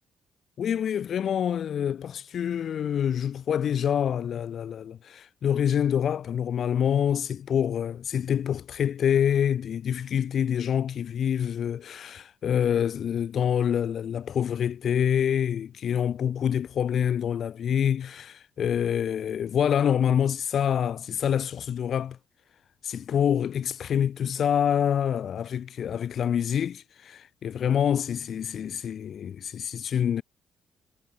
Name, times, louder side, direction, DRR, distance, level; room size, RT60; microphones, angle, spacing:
voice 1, 0.6-22.2 22.8-30.2, left 9 dB, 60° left, 1.0 m, -26 dB
cardioid pair, 90°, 0 cm